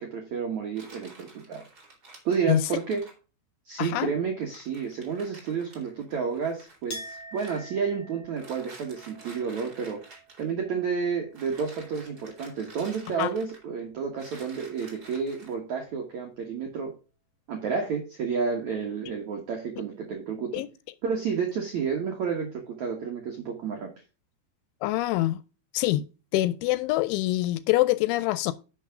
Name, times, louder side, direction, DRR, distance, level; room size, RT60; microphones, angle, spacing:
voice 1, 0.0-1.6 2.2-3.0 3.6-10.0 10.4-16.9 17.5-20.5 21.0-23.9, right 6 dB, 75° right, 1.7 m, -30 dB
sound 1, 0.7-3.2 4.1-4.2 4.4-7.6 8.3-10.5 11.3-13.8 14.2-15.5, right 2 dB, 25° right, 2.5 m, -50 dB
voice 2, 3.8-4.1 13.2-13.3 20.5-20.7 24.8-25.4 25.7-26.1 26.3-28.5, left 16 dB, 85° left, 2.9 m, -25 dB
Chink clink, 6.9-12.4 12.7-13.6, right 1 dB, 40° left, 3.0 m, -47 dB
10.5 x 6.4 x 3.7 m
omnidirectional pair, 5.6 m